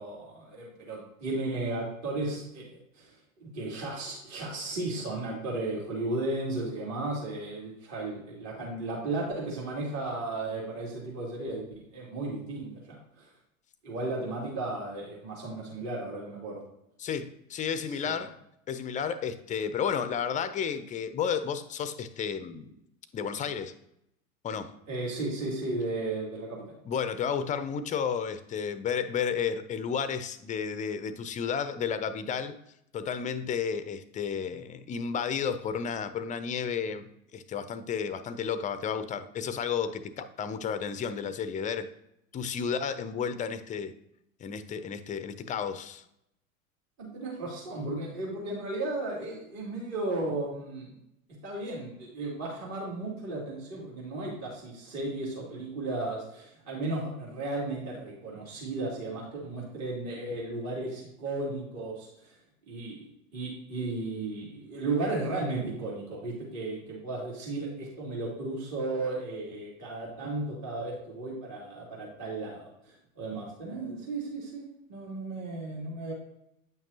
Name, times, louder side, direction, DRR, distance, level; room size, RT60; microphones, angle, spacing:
voice 1, 0.0-11.6 11.9-13.3 13.8-16.6 17.9-18.2 24.9-26.7 47.0-50.9 51.4-62.4 62.7-76.1, right 2 dB, 40° right, -4 dB, 2.5 m, -35 dB
voice 2, 17.0-18.3 18.7-22.7 23.1-23.7 24.4-24.7 26.9-32.6 32.9-41.9 42.3-43.9 44.4-46.0, left 7 dB, 20° left, 12 dB, 0.5 m, -32 dB
9.0 x 5.8 x 2.8 m, 0.79 s
figure-of-eight pair, 80°, 41 cm